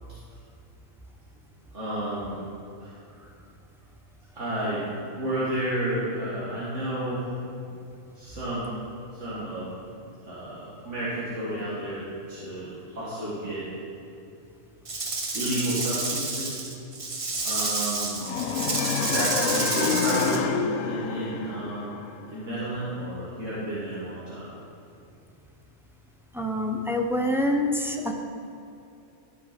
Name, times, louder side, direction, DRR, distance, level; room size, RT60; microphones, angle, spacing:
voice 1, 1.7-2.4 2.8-2.9 4.3-4.8 5.1-7.3 8.1-8.7 9.1-9.7 10.3-13.6 15.3-16.7 17.4-18.3 19.0-20.5 20.8-22.0 22.3-24.5, right 1 dB, 70° right, -9 dB, 2.1 m, -31 dB
Rattle / Rattle (instrument), 14.8-20.4, right 3 dB, 30° right, 0.8 m, -30 dB
sound 1, 18.2-22.3, left 6 dB, 90° left, 1.0 m, -28 dB
voice 2, 26.3-28.1, left 1 dB, 5° right, 2 dB, 0.3 m, -26 dB
13.5 x 6.0 x 4.4 m, 2.7 s
omnidirectional pair, 1.3 m